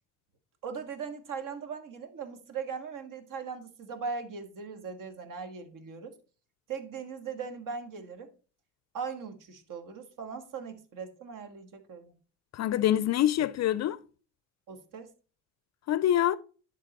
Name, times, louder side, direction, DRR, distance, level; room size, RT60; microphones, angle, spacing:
voice 1, 0.6-6.1 6.7-8.3 8.9-12.1 14.7-15.1, right 5 dB, 55° right, 1.6 m, -39 dB
voice 2, 12.5-14.0 15.9-16.4, left 12 dB, 45° left, 0.4 m, -25 dB
11.0 x 3.8 x 4.1 m
supercardioid pair, 90°, 39 cm